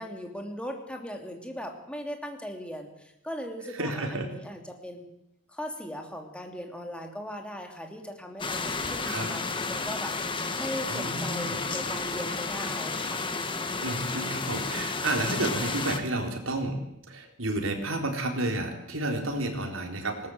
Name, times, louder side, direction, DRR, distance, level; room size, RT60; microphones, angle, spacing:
voice 1, 0.0-5.1 5.5-10.1 10.6-13.2 19.5-19.9, equal, 5° left, 3 dB, 2.9 m, -39 dB
voice 2, 3.7-4.3 9.0-9.3 10.9-11.6 13.8-16.8 17.1-20.3, right 2 dB, 80° right, 4 dB, 3.9 m, -31 dB
sound 1, 8.4-16.0, left 4 dB, 25° left, 1.6 m, -32 dB
20.0 x 18.5 x 8.0 m, 0.79 s
head